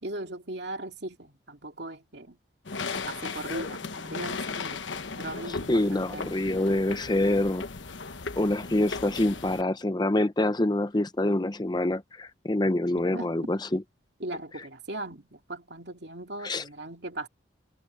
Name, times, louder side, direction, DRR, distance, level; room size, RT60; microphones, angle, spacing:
voice 1, 0.0-2.4 3.1-6.3 13.1-13.5 14.2-17.3, right 2 dB, 60° right, 2.7 m, -38 dB
sound 1, 2.6-9.6, left 4 dB, 75° left, 1.1 m, -36 dB
voice 2, 5.5-7.7 8.4-13.8 16.4-16.6, left 1 dB, 20° left, 0.6 m, -26 dB
head